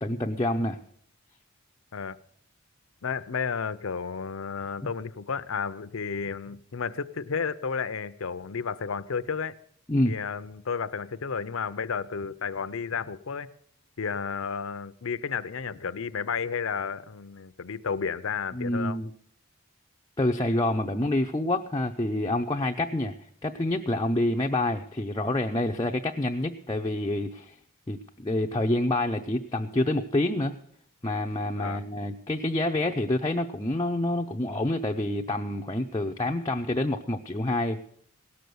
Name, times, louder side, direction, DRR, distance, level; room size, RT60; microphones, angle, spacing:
voice 1, 0.0-0.8 9.9-10.2 18.5-19.1 20.2-23.1 23.4-27.5 27.9-30.6 31.0-37.8, left 1 dB, 20° left, 2 dB, 0.5 m, -27 dB
voice 2, 3.0-9.5 10.0-13.5 14.0-19.0 31.6-31.8, left 6 dB, 70° left, 13 dB, 0.6 m, -32 dB
17.5 x 6.8 x 7.8 m, 0.68 s
head